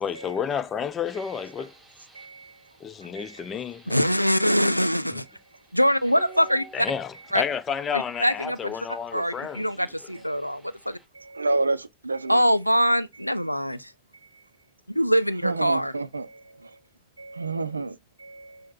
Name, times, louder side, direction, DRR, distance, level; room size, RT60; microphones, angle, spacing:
voice 1, 0.0-1.7 2.8-4.0 6.7-9.7, left 7 dB, 25° left, 0.5 m, -31 dB
sound 1, 1.0-11.1, right 3 dB, 5° right, 3.5 m, -54 dB
voice 2, 2.1-2.5 3.2-3.4 9.2-9.3 11.2-12.5 15.4-16.7 17.2-18.6, right 3 dB, 80° right, 0.4 m, -30 dB
voice 3, 3.9-5.2 5.7-6.9 7.3-7.4 7.9-8.7 9.1-11.0 12.3-13.9 15.0-15.9, equal, 90° left, 0.3 m, -23 dB
6.3 x 2.1 x 3.9 m
figure-of-eight pair, 90°, 0 cm